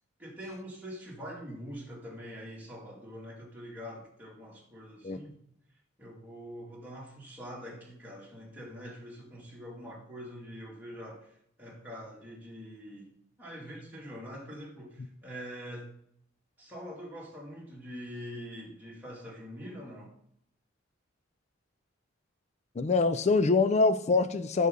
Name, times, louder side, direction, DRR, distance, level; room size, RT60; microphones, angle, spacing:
voice 1, 0.2-5.3 6.0-13.1 13.4-15.9 16.6-20.1, equal, 10° right, 2.5 m, -44 dB
voice 2, 22.8-24.7, left 3 dB, 35° left, 0.4 m, -24 dB
8.3 x 6.3 x 3.8 m
head